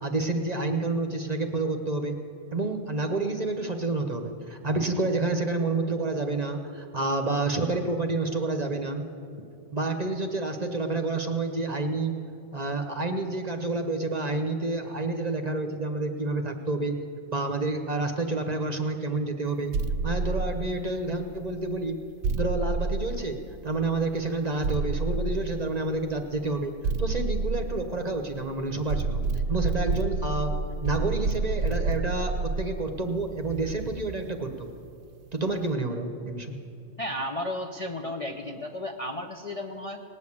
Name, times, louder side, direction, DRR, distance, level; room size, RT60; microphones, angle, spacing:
voice 1, 0.0-2.2 2.5-9.0 9.7-12.1 12.5-17.0 17.3-19.7 20.0-22.0 22.3-23.4 23.6-26.7 27.0-29.2 29.5-30.5 30.8-34.7 35.3-36.6, right 2 dB, 35° right, 5 dB, 0.9 m, -29 dB
sound 1, 19.7-21.2 22.2-23.8 24.6-26.0 26.8-28.4 28.9-34.2, right 3 dB, 65° right, 0.9 m, -29 dB
voice 2, 37.0-40.0, left 1 dB, 35° left, 2 dB, 0.6 m, -33 dB
18.5 x 6.5 x 8.6 m, 2.6 s
omnidirectional pair, 1.3 m